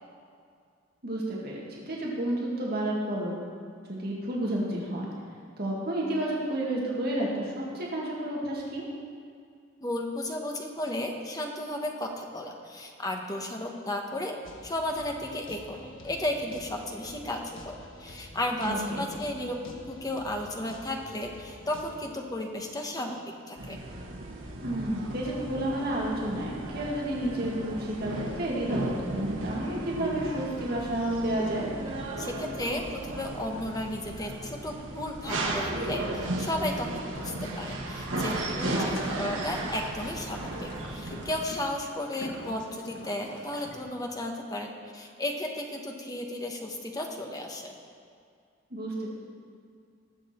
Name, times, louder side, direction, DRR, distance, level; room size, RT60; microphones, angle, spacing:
voice 1, 1.0-3.4 3.9-5.1 5.6-8.8 18.6-19.1 24.6-31.7 38.7-39.2 48.7-49.1, right 1 dB, 50° right, -4 dB, 2.1 m, -31 dB
voice 2, 9.8-15.8 16.0-17.4 17.6-23.9 32.2-36.0 36.4-47.7, left 1 dB, 20° left, 2 dB, 1.1 m, -34 dB
sound 1, 14.4-22.1, left 1 dB, 80° left, 1.4 m, -48 dB
sound 2, 23.6-41.3, right 1 dB, 75° right, 1.5 m, -35 dB
Boat Water vehicle, 38.5-43.8, left 1 dB, 65° left, 1.5 m, -45 dB
20.0 x 7.1 x 4.4 m, 2.3 s
head